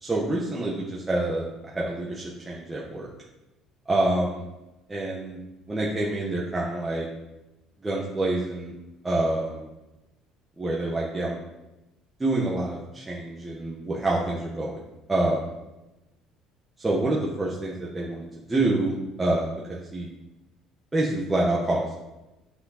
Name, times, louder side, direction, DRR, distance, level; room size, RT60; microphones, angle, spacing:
voice 1, 0.0-3.1 3.9-4.4 4.9-5.4 5.7-7.1 7.8-8.7 9.0-9.7 10.6-11.4 12.2-14.8 15.1-15.4 16.8-18.9 19.2-20.1 20.9-22.0, right 2 dB, 15° right, -5 dB, 1.4 m, -27 dB
8.9 x 6.0 x 4.2 m, 0.99 s
cardioid pair, 145°, 0 cm